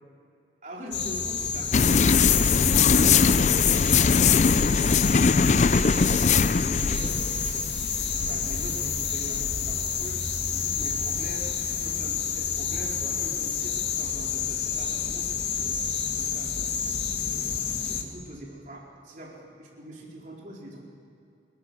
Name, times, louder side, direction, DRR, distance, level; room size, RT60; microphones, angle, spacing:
voice 1, 0.6-6.2 6.5-7.3 8.1-16.7 17.3-20.8, equal, 45° right, -3 dB, 4.2 m, -43 dB
sound 1, 0.9-18.0, left 7 dB, 75° left, 2.1 m, -29 dB
sound 2, 1.7-11.9, left 5 dB, 40° left, 0.4 m, -22 dB
28.5 x 12.5 x 7.6 m, 2.6 s
head